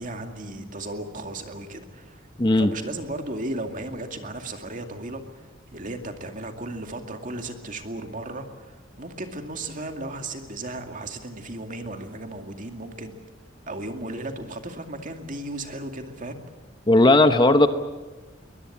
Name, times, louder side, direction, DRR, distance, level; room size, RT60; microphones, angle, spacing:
voice 1, 0.0-2.3 2.6-5.5 5.7-13.2 13.7-16.4, right 2 dB, 45° right, 5 dB, 2.3 m, -35 dB
voice 2, 2.4-2.7 16.9-17.7, left 2 dB, 25° left, 9 dB, 0.9 m, -16 dB
22.5 x 20.5 x 8.7 m, 1.3 s
head